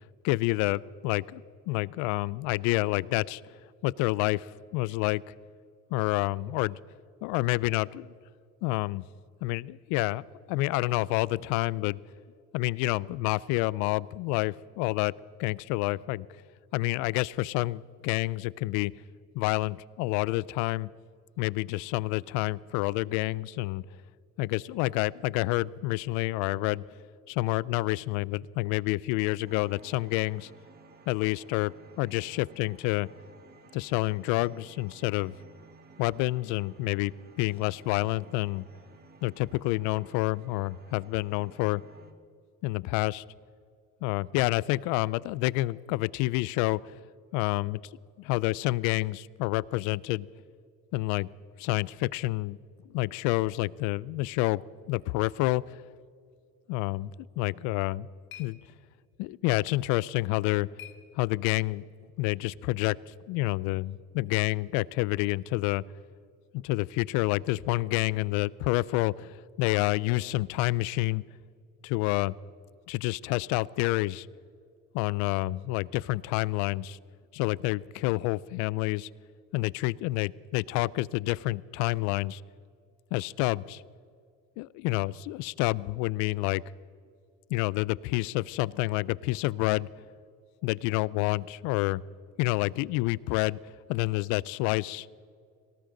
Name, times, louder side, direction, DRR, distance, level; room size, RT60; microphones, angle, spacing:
voice 1, 0.2-3.4 3.8-5.2 5.9-6.8 7.2-8.1 8.6-9.0 9.4-10.2 10.5-12.0 12.5-15.1 15.4-16.3 16.7-18.9 19.3-20.9 21.4-23.8 24.4-26.8 27.3-30.5 31.1-33.1 33.7-35.3 36.0-37.1 37.4-38.7 39.2-41.8 42.6-43.2 44.0-46.8 47.3-47.8 48.2-50.3 50.9-51.3 51.6-52.6 52.9-54.6 54.9-55.8 56.7-58.1 58.4-58.6 59.2-60.7 61.2-61.8 62.2-63.0 63.3-65.8 66.5-71.2 71.8-72.3 72.9-74.3 74.9-77.0 77.3-79.1 79.5-82.4 83.1-83.8 84.6-86.6 87.5-89.9 90.6-92.0 92.4-93.6 93.9-95.1, left 20 dB, 80° left, 22 dB, 0.5 m, -28 dB
sound 1, 29.4-42.1, right 4 dB, 35° right, 1.4 m, -55 dB
sound 2, 57.5-61.8, left 10 dB, 45° left, 1.2 m, -54 dB
18.5 x 18.0 x 3.9 m, 2.2 s
cardioid pair, 130°, 29 cm